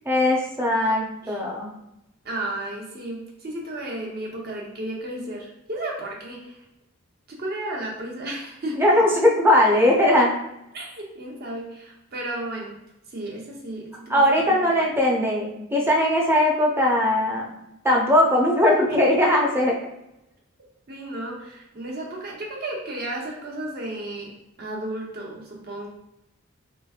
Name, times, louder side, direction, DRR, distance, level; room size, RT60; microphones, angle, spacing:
voice 1, 0.1-1.7 8.8-10.3 14.1-17.5 17.8-19.8, left 1 dB, 10° right, -2 dB, 0.6 m, -19 dB
voice 2, 2.2-6.6 7.3-8.8 10.7-12.8 13.1-14.2 14.5-14.9 20.9-24.3 24.6-25.9, right 1 dB, 50° right, -1 dB, 0.8 m, -33 dB
3.5 x 2.9 x 2.4 m, 0.86 s
head